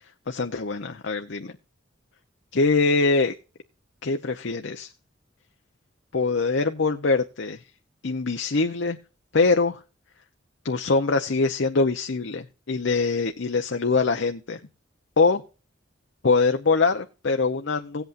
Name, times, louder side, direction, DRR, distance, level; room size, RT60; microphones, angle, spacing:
voice 1, 0.3-1.5 2.5-3.3 4.0-4.9 6.1-7.6 8.0-9.0 9.3-9.8 10.6-14.6 15.2-15.4 16.2-18.0, left 3 dB, 65° left, 5 dB, 0.8 m, -23 dB
17.5 x 8.2 x 2.6 m, 0.33 s
head